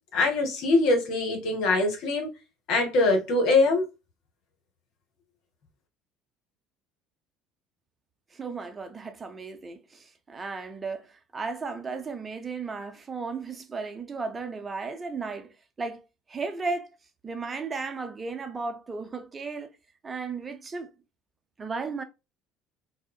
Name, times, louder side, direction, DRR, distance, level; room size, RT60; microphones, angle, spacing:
voice 1, 0.1-2.3 2.7-3.9, left 2 dB, 65° left, 0.9 m, -23 dB
voice 2, 8.3-15.5 15.8-16.0 16.3-16.9 17.2-19.7 20.0-20.9 21.6-22.0, right 4 dB, 30° right, 0.6 m, -35 dB
3.5 x 2.1 x 2.2 m
hypercardioid pair, 65°, 0 cm